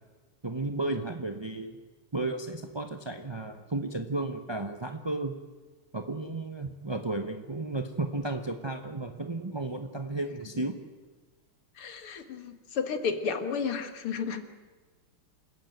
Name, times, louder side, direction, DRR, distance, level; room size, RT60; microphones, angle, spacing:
voice 1, 0.4-1.8 2.1-5.3 5.9-10.8, right 2 dB, 30° right, 6 dB, 0.5 m, -33 dB
voice 2, 11.8-14.4, left 6 dB, 90° left, 8 dB, 2.7 m, -32 dB
27.5 x 15.5 x 9.3 m, 1.3 s
omnidirectional pair, 2.3 m